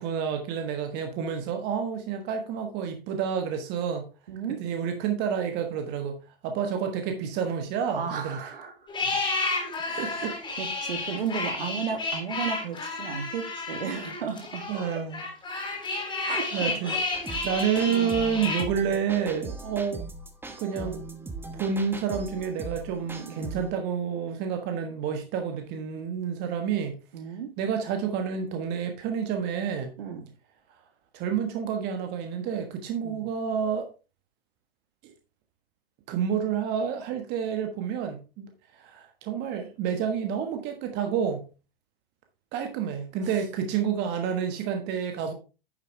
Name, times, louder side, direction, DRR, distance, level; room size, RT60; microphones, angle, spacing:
voice 1, 0.0-4.1 4.6-8.5 10.0-10.4 14.7-15.2 15.6-16.1 16.5-16.9 17.4-20.0 20.6-21.0 21.5-27.0 27.6-29.9 31.1-33.9 35.0-35.1 36.1-41.5 42.5-45.3, right 7 dB, 35° right, 1.4 m, -29 dB
voice 2, 4.3-4.6 7.9-8.7 9.0-9.2 9.8-14.6 16.3-17.4 17.9-18.2 23.2-23.4 27.1-27.5 30.0-30.3 33.0-33.3, right 6 dB, 65° right, 2.3 m, -35 dB
sound 1, 8.9-18.6, left 3 dB, 15° left, 3.5 m, -31 dB
sound 2, 17.1-23.7, right 3 dB, 5° right, 1.0 m, -39 dB
10.5 x 6.8 x 3.2 m
hypercardioid pair, 110°, 30 cm